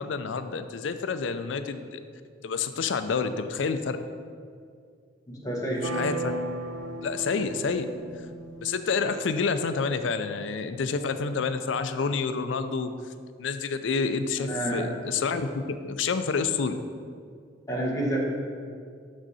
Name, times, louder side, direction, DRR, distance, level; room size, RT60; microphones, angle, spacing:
voice 1, 0.0-2.0 2.4-4.0 5.8-6.3 7.0-7.9 8.6-12.9 13.4-16.8, left 5 dB, 80° left, 10 dB, 0.4 m, -28 dB
voice 2, 5.3-5.8 14.4-14.9 17.7-18.2, right 1 dB, 20° left, -4 dB, 1.3 m, -29 dB
sound 1, 5.8-9.6, right 1 dB, 75° right, 0.8 m, -35 dB
6.3 x 6.3 x 4.1 m, 2.2 s
head